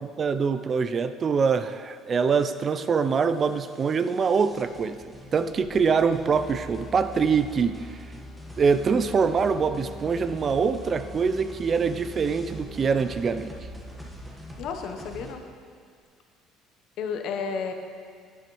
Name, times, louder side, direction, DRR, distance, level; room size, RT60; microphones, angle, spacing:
voice 1, 0.0-8.1 8.6-13.5, right 5 dB, 35° right, 11 dB, 0.4 m, -24 dB
sound 1, 2.1-15.3, equal, 10° right, 1.3 m, -46 dB
sound 2, 6.1-15.6, left 2 dB, 20° left, 0.9 m, -43 dB
voice 2, 14.6-15.4 17.0-17.7, left 6 dB, 65° left, 6 dB, 0.9 m, -31 dB
11.0 x 8.9 x 3.1 m, 2.1 s
supercardioid pair, 100°, 0 cm